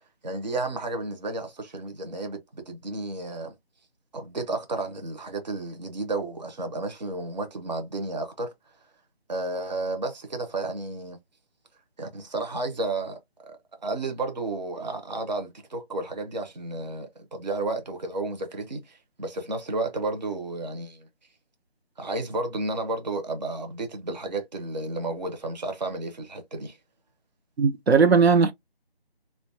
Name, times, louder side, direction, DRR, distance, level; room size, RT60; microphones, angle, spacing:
voice 1, 0.2-3.5 4.1-8.5 9.3-11.2 12.0-21.1 22.0-26.8, right 2 dB, 45° right, 0.6 m, -32 dB
voice 2, 27.6-28.5, right 5 dB, 90° right, 0.6 m, -18 dB
2.4 x 2.2 x 2.6 m
figure-of-eight pair, 165°, 31 cm